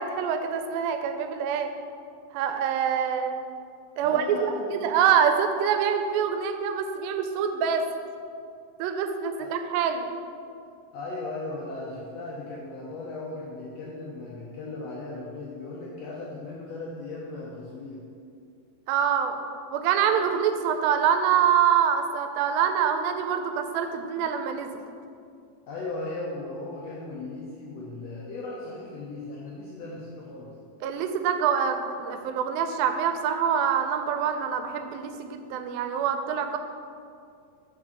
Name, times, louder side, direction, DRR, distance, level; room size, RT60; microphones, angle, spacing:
voice 1, 0.0-1.7 2.3-3.3 4.0-7.8 8.8-10.1 18.9-19.4 19.7-24.7 30.8-36.6, right 8 dB, 85° right, 7 dB, 2.4 m, -25 dB
voice 2, 4.0-4.9 9.4-9.5 10.9-18.0 25.7-30.5, left 2 dB, 70° left, -5 dB, 1.6 m, -37 dB
6.3 x 5.4 x 5.9 m, 2.4 s
omnidirectional pair, 4.1 m